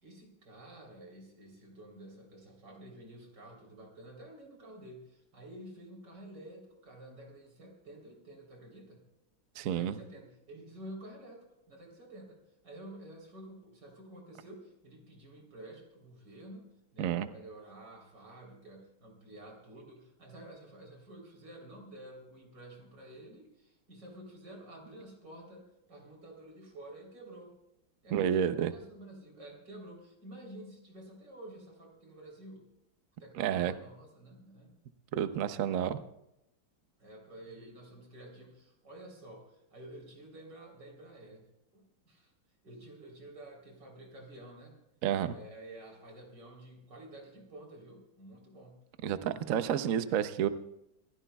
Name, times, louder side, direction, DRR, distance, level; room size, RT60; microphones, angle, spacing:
voice 1, 0.0-9.0 9.7-27.6 28.0-32.7 33.2-34.7 37.0-41.5 41.7-42.3 42.6-44.8 45.2-48.8 49.3-49.7 50.0-50.2, right 1 dB, 55° right, 0 dB, 4.1 m, -50 dB
voice 2, 9.6-9.9 17.0-17.3 28.1-28.7 33.4-33.7 35.1-36.0 45.0-45.3 49.0-50.5, right 9 dB, 70° right, 11 dB, 0.8 m, -30 dB
27.5 x 15.5 x 2.3 m, 0.83 s
omnidirectional pair, 2.2 m